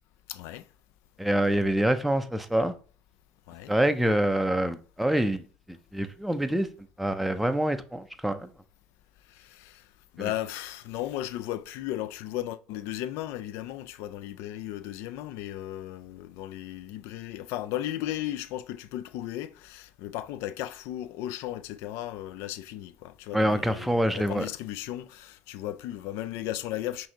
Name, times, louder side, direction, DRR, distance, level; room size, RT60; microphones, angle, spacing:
voice 1, 0.3-0.7 3.5-3.7 9.3-9.9 10.1-27.1, left 13 dB, 75° left, 0.3 m, -35 dB
voice 2, 1.2-2.7 3.7-5.4 5.7-6.7 7.0-8.5 23.3-24.5, right 1 dB, ahead, 0.4 m, -26 dB
5.6 x 2.7 x 2.8 m
supercardioid pair, 85°, 4 cm